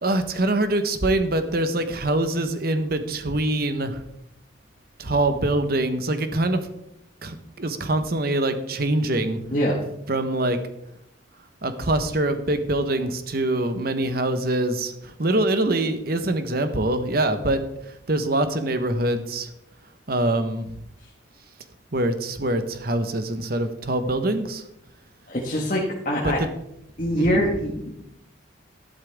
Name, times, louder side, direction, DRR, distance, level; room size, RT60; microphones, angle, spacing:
voice 1, 0.0-4.0 5.0-6.7 7.2-9.4 10.1-10.6 11.6-19.5 20.1-20.8 21.9-24.6 26.2-26.5 27.1-27.4, right 1 dB, 50° right, 9 dB, 1.1 m, -24 dB
voice 2, 9.5-9.8 25.3-26.4 27.0-27.9, equal, 45° left, -2 dB, 1.6 m, -24 dB
13.0 x 11.5 x 3.6 m, 0.80 s
head